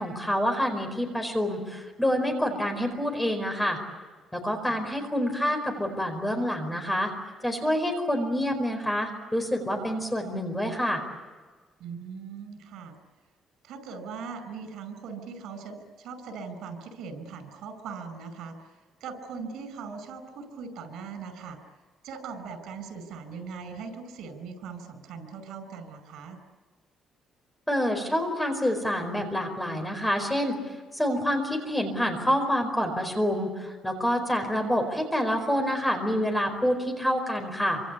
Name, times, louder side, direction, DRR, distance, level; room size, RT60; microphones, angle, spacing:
voice 1, 0.0-3.8 4.3-7.1 7.4-11.0 27.7-30.6 30.9-37.8, equal, 5° left, 4 dB, 4.7 m, -27 dB
voice 2, 11.8-12.9 13.6-18.7 19.0-21.6 22.0-26.4, right 5 dB, 90° right, 10 dB, 5.5 m, -40 dB
26.5 x 26.0 x 8.5 m, 1.4 s
cardioid pair, 175°, 0 cm